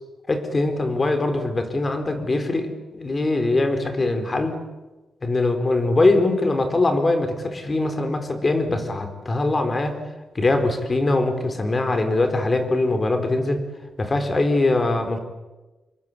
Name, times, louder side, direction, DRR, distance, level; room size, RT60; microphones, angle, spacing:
voice 1, 0.3-4.6 5.2-10.0 10.3-13.6 14.0-15.2, left 2 dB, 25° left, 7 dB, 4.2 m, -22 dB
28.0 x 23.5 x 8.8 m, 1.2 s
cardioid pair, 130°, 0 cm